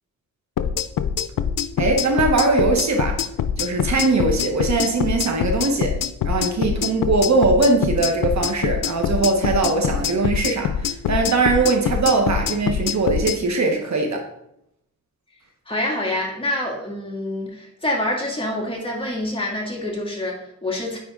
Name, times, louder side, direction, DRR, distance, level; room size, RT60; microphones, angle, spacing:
sound 1, 0.6-13.4, left 8 dB, 85° left, 0.5 m, -24 dB
voice 1, 1.8-3.2 3.6-6.0 6.2-14.3, right 3 dB, 60° right, 3 dB, 1.2 m, -21 dB
voice 2, 15.7-21.0, left 1 dB, 15° left, -3 dB, 2.4 m, -26 dB
9.5 x 3.8 x 3.8 m, 0.76 s
cardioid pair, 70°, 32 cm